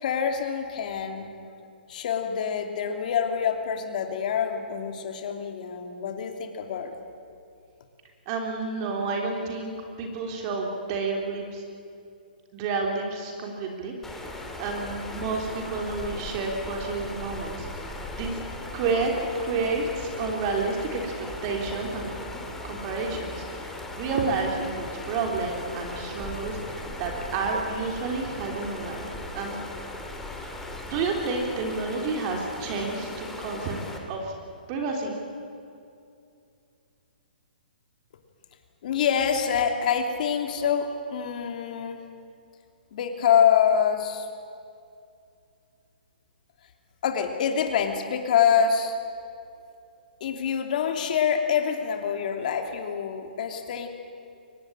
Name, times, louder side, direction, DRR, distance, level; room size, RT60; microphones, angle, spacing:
voice 1, 0.0-1.3 1.9-6.9 38.8-42.0 42.9-44.3 47.0-49.0 50.2-53.9, left 7 dB, 55° left, 5 dB, 2.9 m, -25 dB
voice 2, 8.3-11.6 12.5-14.3 14.6-18.4 18.7-19.1 19.4-22.1 22.6-29.1 29.3-29.6 30.4-33.8 34.1-34.3 34.7-35.2, right 4 dB, 35° right, 1 dB, 3.6 m, -30 dB
sound 1, 14.0-34.0, left 2 dB, 5° left, 2.6 m, -38 dB
23.5 x 19.5 x 8.9 m, 2.5 s
hypercardioid pair, 145°, 5 cm